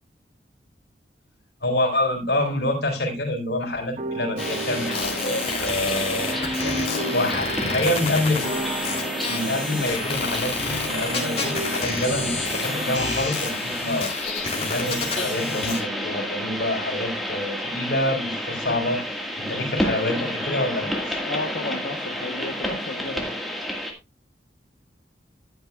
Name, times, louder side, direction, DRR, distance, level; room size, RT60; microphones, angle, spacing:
voice 1, 1.6-5.3 5.6-6.7 7.1-8.5 9.3-19.0 19.4-21.2, left 1 dB, 65° left, 0 dB, 4.1 m, -27 dB
sound 1, 4.0-12.9, right 2 dB, 40° right, 1.0 m, -34 dB
sound 2, 4.4-15.8, left 4 dB, 35° left, 3.0 m, -30 dB
sound 3, 4.4-23.9, equal, ahead, 1.8 m, -30 dB
voice 2, 5.1-7.2 21.2-23.3, left 2 dB, 85° left, 3 dB, 1.1 m, -34 dB
14.0 x 8.9 x 2.4 m, 0.25 s
head